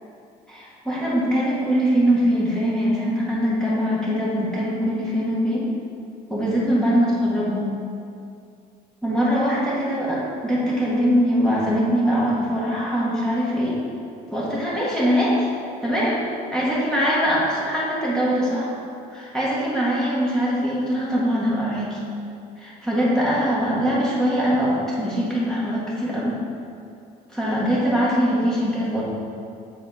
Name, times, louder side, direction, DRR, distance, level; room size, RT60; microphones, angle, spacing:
voice 1, 0.5-5.7 6.3-7.7 9.0-13.8 14.3-15.5 15.8-16.2 16.5-18.7 19.1-22.0 22.6-26.3 27.3-29.0, equal, 5° left, -8 dB, 1.6 m, -22 dB
7.0 x 4.1 x 4.2 m, 2.4 s
cardioid pair, 110°, 17 cm